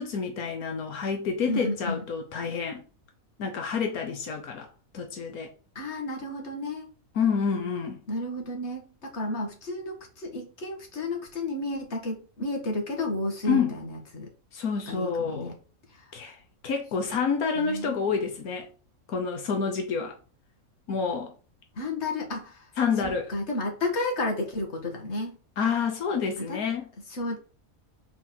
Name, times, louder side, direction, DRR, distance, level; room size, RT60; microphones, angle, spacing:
voice 1, 0.0-2.8 3.4-4.7 4.9-5.5 7.1-8.0 13.5-13.7 14.5-15.5 16.1-18.7 19.1-20.2 20.9-21.3 22.8-23.3 25.6-26.8, left 5 dB, 85° left, 1.6 m, -28 dB
voice 2, 1.5-2.0 5.8-6.9 8.1-14.3 14.9-15.6 15.9-16.1 17.6-18.2 21.8-22.7 23.0-25.4 26.4-26.6 27.1-27.4, left 2 dB, 50° left, 2.2 m, -32 dB
6.4 x 4.3 x 6.0 m
omnidirectional pair, 1.5 m